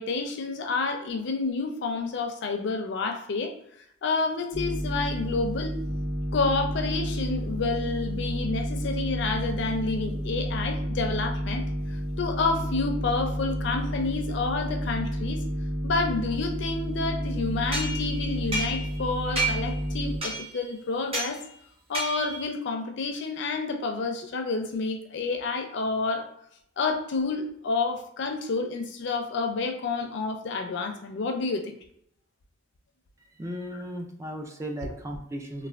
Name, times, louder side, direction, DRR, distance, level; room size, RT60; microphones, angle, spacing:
voice 1, 0.0-3.5 4.0-5.8 6.3-11.6 12.2-15.4 15.8-21.4 21.9-26.3 26.8-31.7, left 3 dB, 65° left, 4 dB, 0.4 m, -29 dB
sound 1, 4.5-20.2, equal, 85° right, 1.2 m, -31 dB
sound 2, 17.7-19.0 19.4-19.8 20.2-20.6 21.1-21.4 21.9-22.5, right 2 dB, 30° right, 0.7 m, -31 dB
voice 2, 33.4-35.7, equal, 15° right, 3 dB, 0.3 m, -36 dB
3.2 x 2.1 x 2.3 m, 0.71 s
head